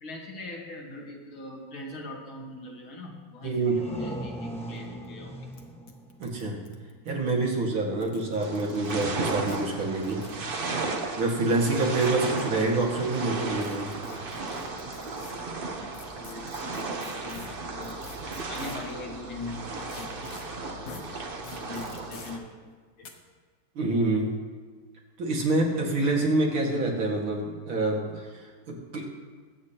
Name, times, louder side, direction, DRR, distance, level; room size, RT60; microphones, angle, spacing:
voice 1, 0.0-5.7 16.0-21.2 21.7-22.6 23.0-23.1, left 2 dB, 75° left, -1 dB, 2.5 m, -42 dB
sound 1, 3.4-7.0, right 1 dB, 5° left, 1.1 m, -39 dB
voice 2, 3.4-3.8 6.2-6.6 7.1-10.2 11.2-13.9 23.8-24.3 25.2-29.0, right 2 dB, 75° right, -2 dB, 2.7 m, -26 dB
sound 2, 4.8-4.9 5.0-5.1 5.5-5.6 5.9-7.3 7.9-9.0 9.5-9.6 10.0-10.4 11.5-12.4 13.6-15.3 15.9-18.9 19.9-20.4 20.9-21.0 21.4-22.3 23.0-23.1, left 5 dB, 50° left, 1.2 m, -47 dB
sound 3, 8.4-22.4, right 3 dB, 45° right, 0.7 m, -35 dB
21.5 x 8.3 x 2.9 m, 1.5 s
omnidirectional pair, 2.3 m